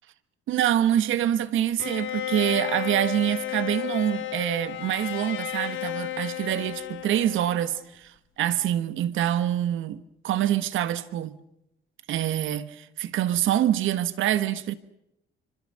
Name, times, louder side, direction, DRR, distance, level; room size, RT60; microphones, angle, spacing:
voice 1, 0.5-11.4 12.1-14.7, right 11 dB, 85° right, 1.5 m, -26 dB
Bowed string instrument, 1.8-7.9, left 14 dB, 75° left, 1.6 m, -33 dB
26.0 x 25.5 x 6.6 m
cardioid pair, 90°, 20 cm